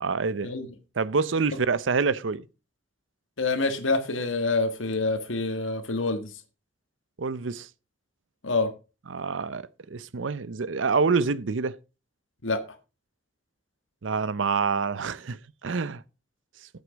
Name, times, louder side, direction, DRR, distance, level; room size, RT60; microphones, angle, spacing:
voice 1, 0.0-0.5 1.0-2.4 7.2-7.7 9.1-11.7 14.0-16.0, right 4 dB, 80° right, 0.6 m, -27 dB
voice 2, 3.4-6.3 8.4-8.7 12.4-12.6, left 3 dB, 90° left, 1.6 m, -26 dB
8.2 x 8.1 x 5.1 m
head